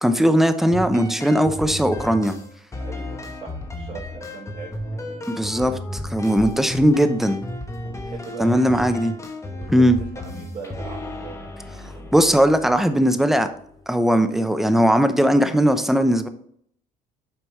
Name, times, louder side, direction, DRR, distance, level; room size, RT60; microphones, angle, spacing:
voice 1, 0.0-2.3 5.3-7.4 8.4-9.1 9.7-10.0 12.1-13.5 13.9-16.3, equal, ahead, 8 dB, 0.7 m, -19 dB
sound 1, 0.6-14.0, left 1 dB, 15° left, 1.1 m, -34 dB
voice 2, 2.8-5.2 7.8-9.0 9.5-12.1, right 4 dB, 40° right, -7 dB, 2.9 m, -40 dB
7.8 x 5.2 x 3.1 m, 0.65 s
cardioid pair, 110°, 17 cm